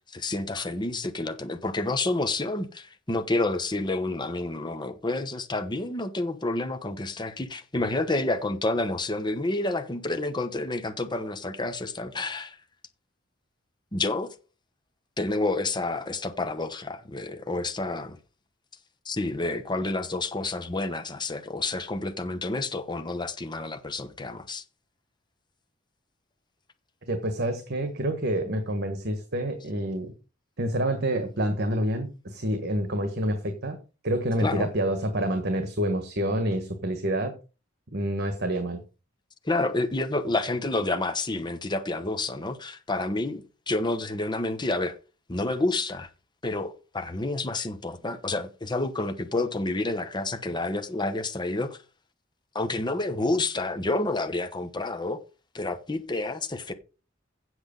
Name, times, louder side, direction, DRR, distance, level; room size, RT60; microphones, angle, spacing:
voice 1, 0.1-12.6 13.9-14.3 15.2-18.2 19.0-24.6 34.4-34.7 39.4-44.9 45.3-46.1 46.4-51.8 52.5-55.2 55.5-56.7, left 2 dB, 25° left, 1.1 m, -29 dB
voice 2, 27.1-30.1 30.6-33.8 34.0-37.3 37.9-38.8, right 1 dB, 55° right, 1.5 m, -28 dB
8.0 x 7.9 x 5.3 m
head